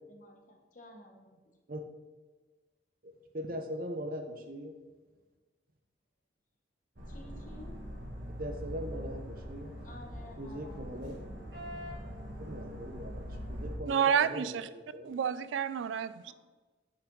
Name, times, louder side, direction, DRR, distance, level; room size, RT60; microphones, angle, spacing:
voice 1, 0.1-1.4 7.1-7.8 9.8-10.8 16.3-16.4, equal, 45° left, 2 dB, 1.1 m, -52 dB
voice 2, 3.0-4.7 8.4-9.7 10.4-11.1 12.4-13.2 13.5-15.1, equal, 50° right, 5 dB, 0.8 m, -40 dB
sound 1, 7.0-13.8, equal, 70° right, 2.0 m, -42 dB
voice 3, 13.9-14.7 15.1-16.3, right 7 dB, 85° right, 15 dB, 0.3 m, -29 dB
6.7 x 5.6 x 3.9 m, 1.3 s
head